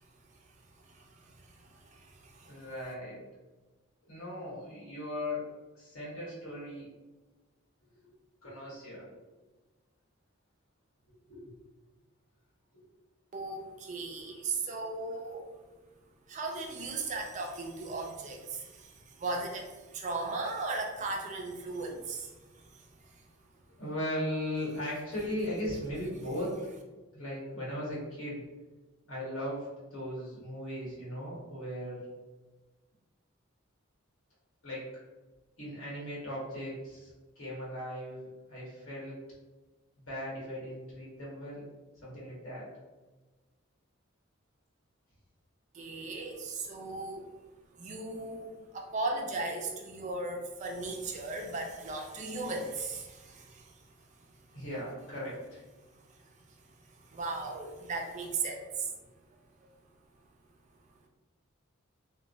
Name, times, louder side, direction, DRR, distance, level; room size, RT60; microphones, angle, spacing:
voice 1, 1.6-2.5 13.3-15.4 16.3-22.3 22.7-22.8 45.7-47.3 47.8-53.7 57.1-58.9, right 3 dB, 35° right, 1 dB, 0.4 m, -37 dB
voice 2, 2.4-3.2 4.1-5.5 5.7-6.9 8.4-9.1 11.1-11.4 23.8-26.6 27.1-28.4 29.1-32.0 34.6-34.8 35.6-37.1 37.4-39.2 40.0-41.6 42.0-42.7 54.5-55.6, left 1 dB, 75° left, -7 dB, 1.4 m, -38 dB
3.0 x 2.2 x 2.6 m, 1.2 s
head